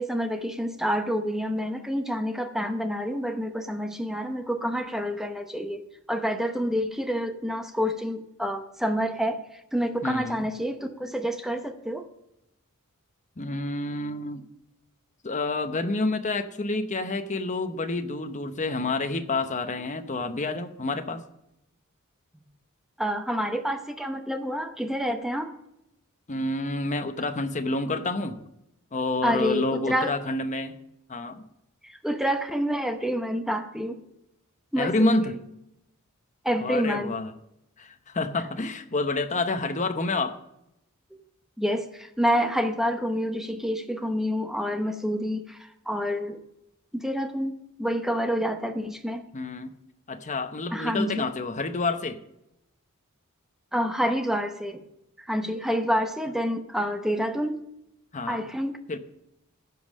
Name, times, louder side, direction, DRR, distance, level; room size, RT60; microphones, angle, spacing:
voice 1, 0.0-5.8 6.1-9.4 9.7-12.0 23.0-25.5 29.2-30.1 31.8-34.0 34.7-35.4 36.4-37.1 41.6-46.4 46.9-49.2 50.7-51.2 53.7-54.8 55.2-57.6 58.3-59.0, equal, ahead, 6 dB, 0.8 m, -28 dB
voice 2, 10.0-10.5 13.4-14.5 15.2-21.2 26.3-28.4 28.9-30.8 31.1-31.4 34.8-35.4 36.6-37.3 37.8-40.4 49.3-49.7 50.1-52.2 58.1-58.4 58.9-59.0, left 2 dB, 35° left, 8 dB, 0.9 m, -28 dB
15.5 x 5.4 x 6.3 m, 0.83 s
head